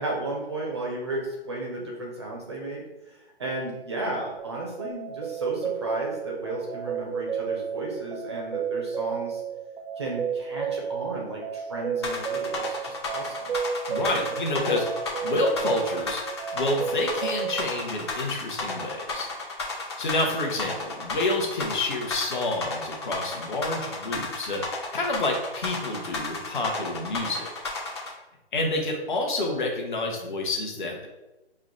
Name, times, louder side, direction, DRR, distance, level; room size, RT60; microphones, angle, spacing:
voice 1, 0.0-9.4 10.0-13.5, right 2 dB, 25° right, -1 dB, 0.5 m, -34 dB
sound 1, 4.4-17.6, right 7 dB, 85° right, 0.5 m, -32 dB
sound 2, 12.0-28.1, left 3 dB, 25° left, 0.6 m, -32 dB
voice 2, 13.9-16.2 16.5-19.3 20.0-27.5 28.5-31.1, left 2 dB, 50° left, 1 dB, 1.0 m, -28 dB
4.6 x 2.2 x 3.8 m, 1.0 s
hypercardioid pair, 150°, 32 cm